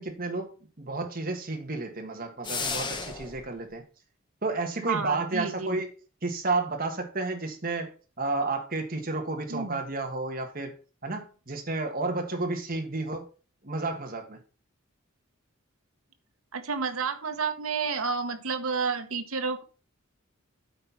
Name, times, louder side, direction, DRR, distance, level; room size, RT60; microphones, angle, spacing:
voice 1, 0.0-3.8 4.4-5.9 6.2-10.7 11.0-13.3 13.6-14.4, right 3 dB, 40° right, 1.8 m, -31 dB
sound 1, 2.4-3.4, left 5 dB, 20° left, 1.0 m, -33 dB
voice 2, 4.8-5.8 9.5-9.8 16.5-19.6, right 5 dB, 80° right, 1.1 m, -30 dB
8.8 x 4.4 x 5.8 m
head